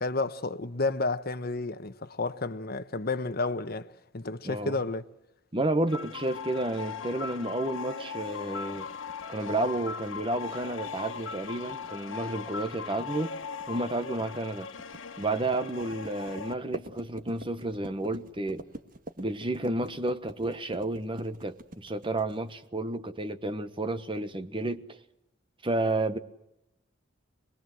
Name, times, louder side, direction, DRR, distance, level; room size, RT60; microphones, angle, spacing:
voice 1, 0.0-3.9 4.1-5.0, left 3 dB, 50° left, 1.2 m, -31 dB
voice 2, 4.4-4.8 5.5-8.9 9.3-13.3 13.7-14.7 15.2-18.6 19.2-25.0 25.6-26.2, right 2 dB, 25° right, 1.3 m, -31 dB
sound 1, 5.9-16.5, left 5 dB, 85° left, 1.4 m, -39 dB
sound 2, 8.9-22.6, right 1 dB, 45° right, 1.7 m, -46 dB
25.5 x 21.0 x 7.8 m
head